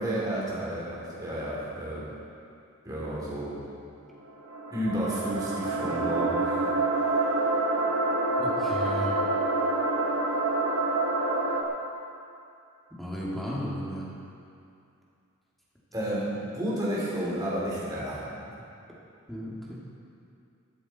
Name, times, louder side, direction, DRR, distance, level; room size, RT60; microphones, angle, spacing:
voice 1, 0.0-2.1 2.8-3.6 4.7-6.6 15.9-18.4, right 1 dB, 15° right, -7 dB, 3.0 m, -31 dB
sound 1, 4.2-11.6, right 2 dB, 75° right, 1.6 m, -27 dB
voice 2, 8.4-9.3 13.0-14.2 19.3-19.8, equal, ahead, -6 dB, 2.3 m, -34 dB
13.0 x 13.0 x 4.2 m, 2.5 s
head